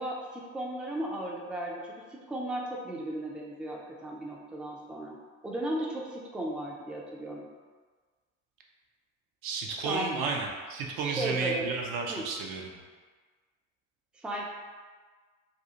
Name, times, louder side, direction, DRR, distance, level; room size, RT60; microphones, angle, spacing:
voice 1, 0.0-5.2 5.4-7.5 9.8-10.2 11.0-11.7 12.1-12.3 14.1-14.5, right 1 dB, 5° right, -2 dB, 0.4 m, -35 dB
voice 2, 9.4-12.8, right 4 dB, 60° right, 0 dB, 0.5 m, -33 dB
2.5 x 2.3 x 2.8 m, 1.5 s
figure-of-eight pair, 45°, 40 cm